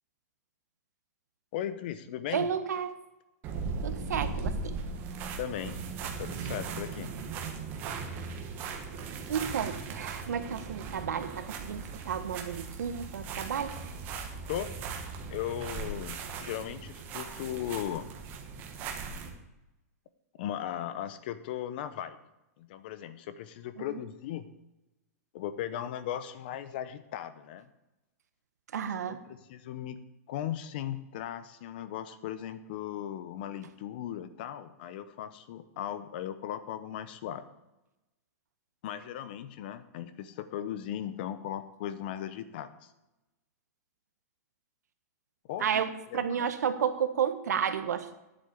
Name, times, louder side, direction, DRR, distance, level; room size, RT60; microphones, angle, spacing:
voice 1, 1.5-2.5 5.4-5.8 6.2-7.1 14.4-14.7 15.3-18.1 20.4-22.2 22.6-24.5 25.3-27.7 29.1-30.0 30.3-37.4 38.8-42.9 45.5-45.8 46.1-46.5, left 10 dB, 35° left, 13 dB, 0.8 m, -37 dB
voice 2, 2.3-3.0 3.8-4.7 9.3-13.8 23.8-23.9 28.7-29.2 45.6-48.1, right 8 dB, 85° right, 10 dB, 1.4 m, -32 dB
sound 1, 3.4-19.3, right 4 dB, 20° right, 1.3 m, -38 dB
9.8 x 8.3 x 8.2 m, 0.98 s
supercardioid pair, 175°, 9 cm